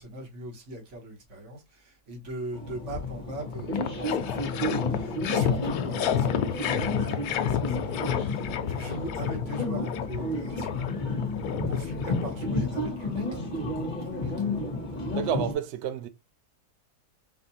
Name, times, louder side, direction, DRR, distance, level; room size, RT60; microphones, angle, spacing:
voice 1, 0.0-10.9 11.4-14.5, equal, 50° right, 1.6 m, -41 dB
sound 1, 2.5-15.5, left 1 dB, 30° left, 1.2 m, -32 dB
sound 2, 3.0-3.1 3.4-12.8, left 8 dB, 75° left, 1.1 m, -30 dB
voice 2, 15.1-16.1, right 8 dB, 75° right, 0.6 m, -30 dB
4.5 x 2.5 x 4.1 m
omnidirectional pair, 1.7 m